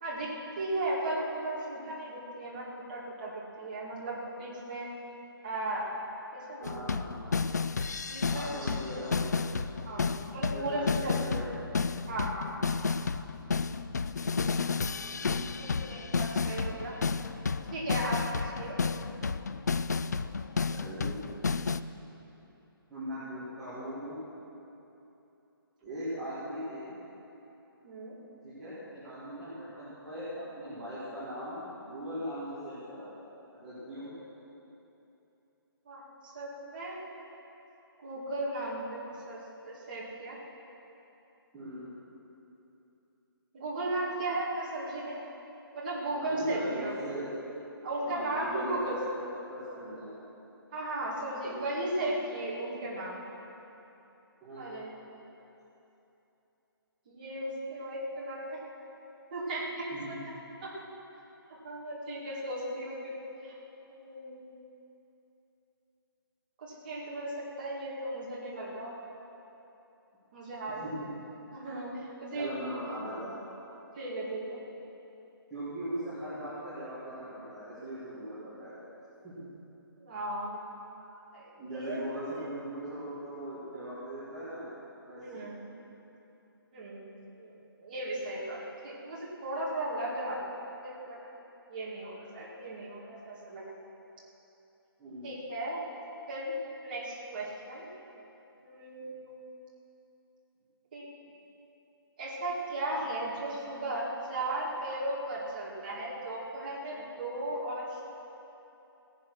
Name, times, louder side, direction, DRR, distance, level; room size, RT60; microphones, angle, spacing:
voice 1, 0.0-4.9 5.4-5.9 6.3-7.0 8.1-9.0 9.8-11.2 12.1-12.7 15.6-16.9 17.7-18.8 27.8-28.2 34.0-34.1 35.9-37.0 38.0-39.4 39.7-40.4 43.5-45.2 45.7-46.9 47.8-49.0 49.7-50.0 50.7-53.2 54.6-54.9 57.1-58.6 59.3-60.2 60.6-60.7 61.6-63.6 63.9-64.5 66.6-69.2 70.3-70.9 71.5-72.6 73.9-74.6 80.0-82.4 85.2-85.7 86.7-87.5 87.8-90.4 90.8-91.2 91.7-93.6 95.2-95.8 96.3-96.6 96.8-97.9 98.6-99.4 100.9-101.1 102.2-108.0, right 1 dB, 20° right, -6 dB, 2.2 m, -36 dB
sound 1, 6.6-21.8, left 4 dB, 45° left, 0.4 m, -32 dB
voice 2, 6.6-7.4 8.3-9.4 10.5-11.5 15.2-15.5 20.7-21.2 22.9-24.2 25.8-26.9 28.4-33.1 33.5-34.1 41.5-41.9 46.3-47.3 48.0-50.2 54.4-54.7 59.9-60.2 70.8-70.9 72.3-73.4 75.5-78.8 79.2-79.5 81.6-84.7 85.0-85.4 95.0-95.3, equal, ahead, -19 dB, 2.3 m, -39 dB
16.5 x 10.5 x 6.2 m, 3.0 s
hypercardioid pair, 180°, 13 cm